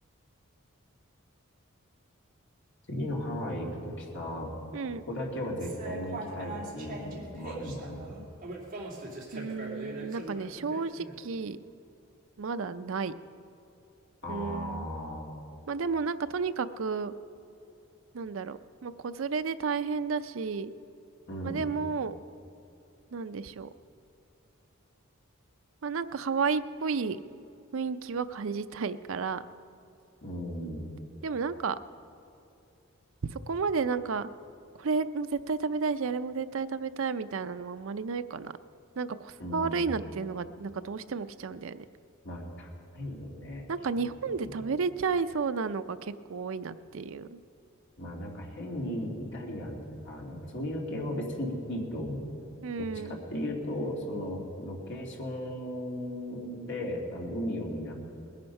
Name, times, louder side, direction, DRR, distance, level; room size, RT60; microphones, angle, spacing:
voice 1, 2.9-4.5 5.1-8.1 14.2-15.3 21.3-21.6 30.2-30.8 39.4-39.9 42.2-42.7 42.9-43.6 43.9-44.6 48.0-52.2 52.8-57.9, left 1 dB, 60° left, -1 dB, 2.5 m, -36 dB
sound 1, 5.6-11.2, right 2 dB, 40° right, 2.5 m, -41 dB
voice 2, 9.3-11.6 12.4-13.1 14.3-14.9 15.7-17.1 18.1-20.7 21.4-22.1 23.1-23.7 25.8-27.2 27.7-29.4 31.2-31.8 33.3-34.3 34.8-38.5 39.0-41.8 43.7-47.4 52.6-53.2, right 5 dB, 65° right, 11 dB, 0.5 m, -32 dB
20.0 x 10.0 x 5.4 m, 2.8 s
head